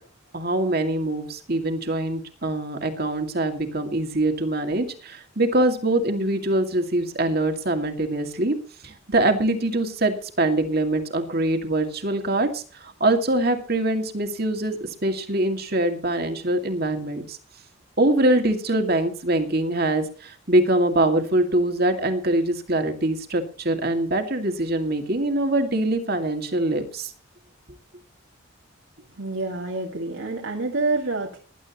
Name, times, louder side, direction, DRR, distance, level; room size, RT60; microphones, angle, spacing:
voice 1, 0.3-8.6 8.8-17.4 18.0-27.1, right 1 dB, 45° right, 5 dB, 2.3 m, -23 dB
voice 2, 29.1-31.4, right 3 dB, 75° right, 0 dB, 2.1 m, -27 dB
20.0 x 11.5 x 3.0 m, 0.39 s
head